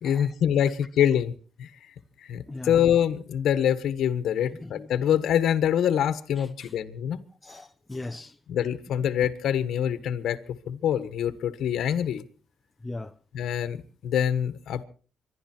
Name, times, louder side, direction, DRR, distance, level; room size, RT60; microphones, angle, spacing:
voice 1, 0.0-1.3 1.6-1.7 2.3-7.2 8.5-10.4 10.7-12.2 13.3-13.8 14.0-14.8, left 9 dB, 75° left, 1.3 m, -25 dB
voice 2, 4.5-4.9 6.4-6.7 7.4-8.4 12.8-13.1, left 2 dB, 15° left, 0.8 m, -39 dB
26.0 x 12.0 x 4.4 m
cardioid pair, 90°, 0 cm